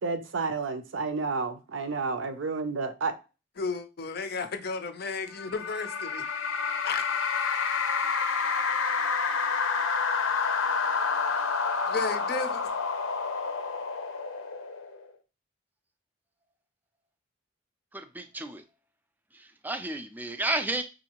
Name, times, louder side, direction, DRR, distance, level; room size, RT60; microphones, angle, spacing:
voice 1, 0.0-3.1, right 4 dB, 70° right, 0.5 m, -30 dB
voice 2, 3.6-6.2 6.9-7.1 11.9-12.6, left 4 dB, 50° left, 0.5 m, -33 dB
sound 1, 5.4-15.1, left 5 dB, 90° left, 0.7 m, -29 dB
voice 3, 17.9-18.6 19.3-20.8, right 2 dB, 10° right, 0.3 m, -32 dB
5.6 x 2.6 x 2.9 m
head